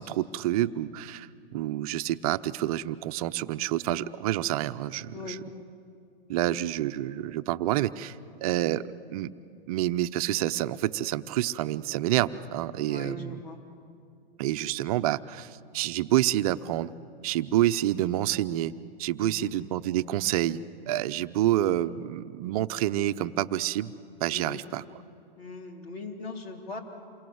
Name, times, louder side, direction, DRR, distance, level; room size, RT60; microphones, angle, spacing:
voice 1, 0.0-5.4 6.3-8.8 9.1-9.3 9.7-13.4 14.4-16.9 17.2-18.7 19.0-20.6 20.9-23.9 24.2-24.8, right 13 dB, 35° right, 12 dB, 0.7 m, -28 dB
voice 2, 12.9-13.6 19.2-19.5 24.3-24.6 25.4-26.8, left 3 dB, 80° left, 3 dB, 3.9 m, -39 dB
28.0 x 22.5 x 7.9 m, 2.4 s
hypercardioid pair, 135°, 30 cm